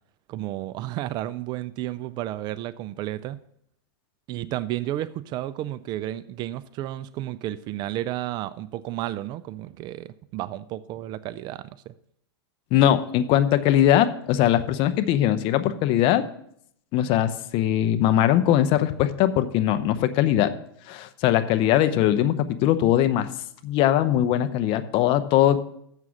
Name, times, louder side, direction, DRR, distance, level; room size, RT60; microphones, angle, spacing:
voice 1, 0.3-3.4 4.3-11.9, right 14 dB, 35° right, 16 dB, 0.3 m, -32 dB
voice 2, 12.7-16.2 16.9-20.5 20.9-23.3 23.6-25.6, left 12 dB, 40° left, 12 dB, 0.7 m, -21 dB
7.5 x 6.3 x 7.0 m, 0.70 s
hypercardioid pair, 120°, 14 cm